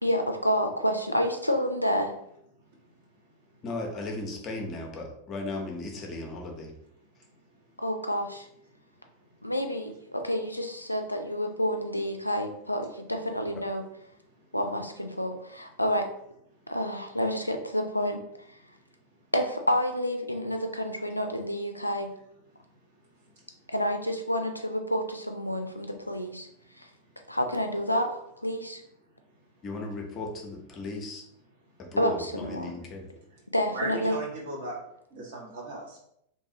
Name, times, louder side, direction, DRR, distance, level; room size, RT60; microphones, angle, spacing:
voice 1, 0.0-2.2 7.8-8.5 9.4-13.8 14.5-16.1 16.7-18.2 19.3-22.1 23.7-26.5 27.3-28.8 32.0-32.7 33.5-34.2, equal, 85° left, 5 dB, 0.3 m, -29 dB
voice 2, 3.6-6.7 29.6-31.2 31.8-33.0, left 2 dB, 30° left, 1 dB, 0.7 m, -36 dB
voice 3, 33.7-34.8 35.1-36.0, right 2 dB, 55° right, -3 dB, 1.1 m, -36 dB
2.8 x 2.3 x 2.7 m, 0.74 s
figure-of-eight pair, 90°, 0 cm